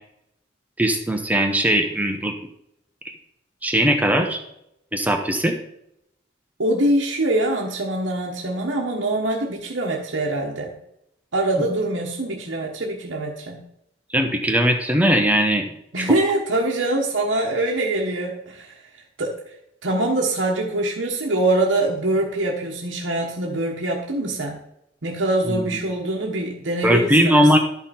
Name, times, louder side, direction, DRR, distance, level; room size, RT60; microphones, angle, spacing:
voice 1, 0.8-2.3 3.0-3.1 3.6-4.4 4.9-5.5 14.1-15.7 16.0-16.1 25.5-25.6 26.8-27.6, equal, 10° right, 3 dB, 0.9 m, -19 dB
voice 2, 6.6-10.7 11.3-13.6 15.9-18.8 19.2-19.4 19.8-24.6 25.0-27.5, right 1 dB, 80° right, -2 dB, 1.3 m, -24 dB
12.0 x 5.7 x 4.3 m, 0.77 s
head